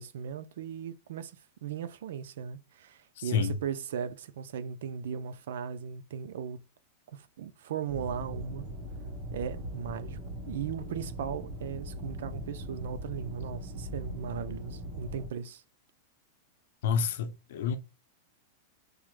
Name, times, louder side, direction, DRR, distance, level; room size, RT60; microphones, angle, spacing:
voice 1, 0.0-6.6 7.1-8.7 9.3-10.2 10.5-15.6, right 7 dB, 75° right, 0.4 m, -37 dB
sound 1, 7.9-15.3, equal, 35° right, 1.1 m, -40 dB
voice 2, 16.8-17.8, left 6 dB, 70° left, 0.6 m, -28 dB
4.7 x 2.1 x 3.1 m
supercardioid pair, 155°, 0 cm